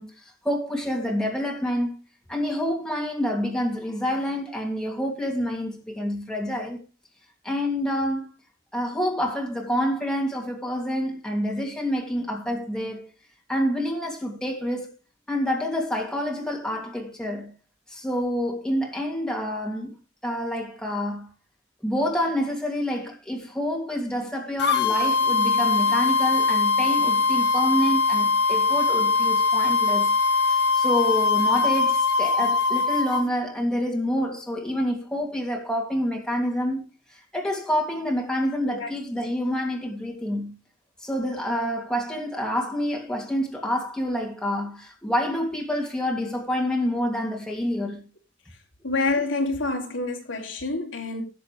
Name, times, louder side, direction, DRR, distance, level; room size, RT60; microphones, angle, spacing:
voice 1, 0.0-2.0 2.3-6.8 7.4-8.3 8.7-13.1 13.5-14.9 15.3-17.5 17.9-19.9 20.2-21.3 21.8-30.2 30.5-40.6 41.0-48.1, equal, 5° left, 2.8 m, -27 dB
sound 1, 24.6-33.2, left 4 dB, 60° left, 1.3 m, -21 dB
voice 2, 48.8-51.2, left 3 dB, 75° left, 2.9 m, -27 dB
17.5 x 7.4 x 3.4 m
head